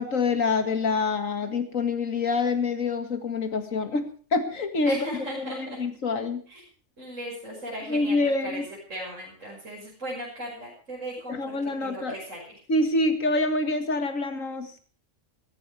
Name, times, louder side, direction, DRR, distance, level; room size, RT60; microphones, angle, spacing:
voice 1, 0.0-5.1 5.4-6.4 7.9-8.6 11.3-12.2 12.7-14.7, left 3 dB, 80° left, 8 dB, 2.4 m, -26 dB
voice 2, 4.9-5.8 6.5-6.6 7.0-8.2 8.4-8.6 8.9-12.6, right 1 dB, 70° right, -5 dB, 6.5 m, -37 dB
16.0 x 15.0 x 4.9 m, 0.41 s
omnidirectional pair, 1.4 m